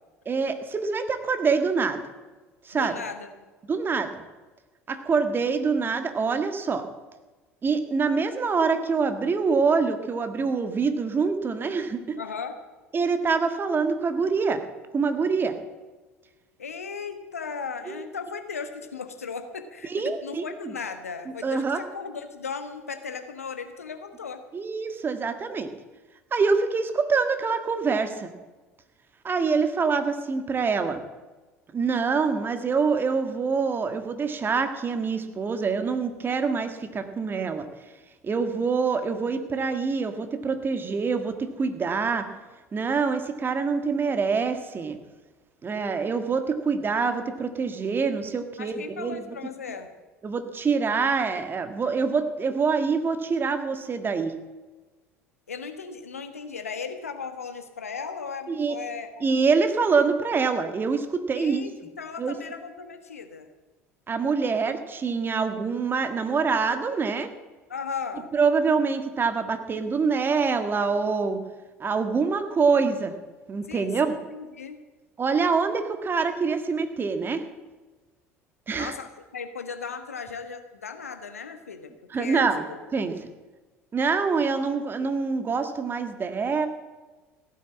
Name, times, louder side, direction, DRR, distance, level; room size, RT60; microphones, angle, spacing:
voice 1, 0.2-2.0 2.6-2.9 3.7-4.2 4.9-6.8 7.6-12.2 12.9-14.6 14.9-15.6 17.9-18.0 19.8-20.7 21.4-21.8 24.5-25.7 26.3-28.3 29.2-31.0 31.7-37.7 38.2-42.3 42.7-45.0 45.6-49.2 50.2-54.4 58.5-58.8 59.2-61.6 62.2-62.4 64.1-67.3 68.3-71.4 71.8-73.1 73.5-74.1 75.2-77.4 78.7-78.9 82.1-82.6 82.9-83.2 83.9-86.7, right 5 dB, 30° right, 8 dB, 1.6 m, -25 dB
voice 2, 2.7-3.3 12.2-12.6 16.6-24.4 48.6-49.9 55.5-59.2 61.4-63.5 67.7-68.3 73.7-74.8 78.8-82.8, left 5 dB, 80° left, 8 dB, 1.2 m, -37 dB
15.5 x 9.3 x 7.4 m, 1.3 s
figure-of-eight pair, 65°, 8 cm